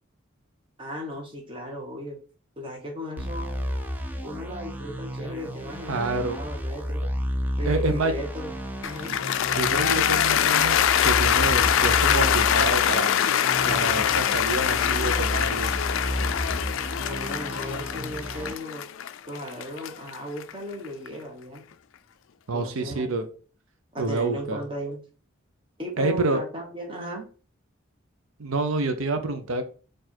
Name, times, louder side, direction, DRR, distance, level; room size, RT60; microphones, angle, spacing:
voice 1, 0.8-2.2 2.6-3.7 4.2-7.1 7.6-8.5 8.8-9.2 17.0-18.9 19.3-21.7 22.5-23.1 23.9-25.0 25.8-27.3, equal, 25° right, 1 dB, 1.1 m, -36 dB
sound 1, 3.2-18.5, equal, 10° right, 0.4 m, -32 dB
voice 2, 5.9-6.4 7.7-8.1 9.6-13.1 13.6-15.8 22.5-23.3 24.0-24.6 26.0-26.4 28.4-29.6, right 3 dB, 85° right, 8 dB, 0.7 m, -28 dB
Cheering / Applause, 8.8-21.1, left 9 dB, 70° left, 0.3 m, -24 dB
4.5 x 2.5 x 4.3 m, 0.37 s
head